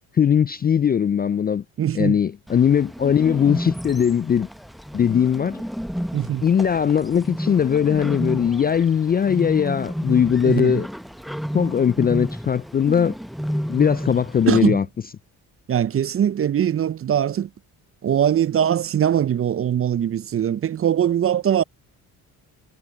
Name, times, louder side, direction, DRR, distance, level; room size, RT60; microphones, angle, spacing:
voice 1, 0.2-1.6 1.9-4.5 4.9-5.6 6.4-10.9 11.5-13.2 13.7-14.8, left 8 dB, 25° left, 0.3 m, -20 dB
voice 2, 1.8-2.2 6.1-6.5 10.4-10.8 14.5-14.8 15.7-17.5 18.0-21.6, right 9 dB, 35° right, 0.5 m, -21 dB
Bird, 2.5-14.6, equal, ahead, 0.8 m, -31 dB
supercardioid pair, 65°, 39 cm